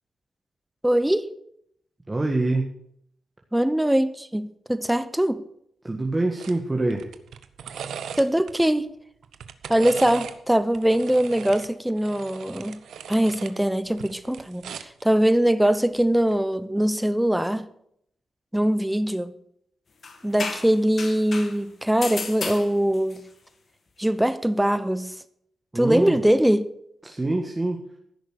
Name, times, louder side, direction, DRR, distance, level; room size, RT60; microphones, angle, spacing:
voice 1, 0.8-1.3 3.5-5.4 8.2-8.9 9.7-12.8 13.1-17.7 18.5-19.3 20.2-23.2 24.0-25.1 25.7-26.7, right 1 dB, 5° right, 0.9 m, -22 dB
voice 2, 2.1-2.7 5.8-7.0 25.7-26.2 27.0-27.9, right 2 dB, 20° right, 1.6 m, -25 dB
sound 1, 6.4-6.6 6.9-8.6 9.2-10.4 10.7-13.5 13.9-15.0 16.2-16.4, right 8 dB, 80° right, 0.8 m, -38 dB
sound 2, 20.0-21.6 22.0-23.2, left 4 dB, 55° left, 2.1 m, -33 dB
15.0 x 6.5 x 6.6 m
cardioid pair, 60°, 0 cm